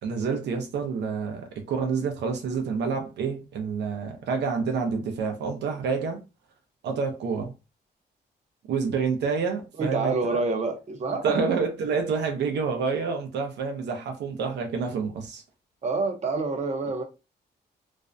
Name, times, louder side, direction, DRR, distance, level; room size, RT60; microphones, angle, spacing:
voice 1, 0.0-6.2 6.8-7.5 8.7-10.4 11.2-15.4, right 5 dB, 85° right, 0.6 m, -28 dB
voice 2, 9.8-11.5 15.8-17.0, right 3 dB, 40° right, 0.6 m, -27 dB
2.5 x 2.1 x 2.5 m
cardioid pair, 105°, 17 cm